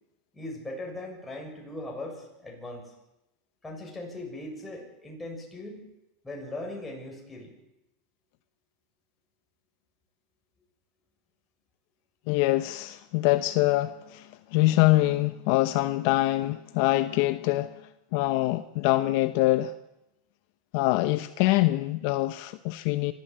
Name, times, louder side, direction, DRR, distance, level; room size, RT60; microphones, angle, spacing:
voice 1, 0.3-2.9 3.6-5.9 6.2-7.5, left 1 dB, 10° left, 6.8 m, -39 dB
voice 2, 12.3-17.8 18.1-19.7 20.7-23.1, left 17 dB, 60° left, 0.9 m, -24 dB
25.0 x 13.5 x 8.7 m
supercardioid pair, 140°, 0 cm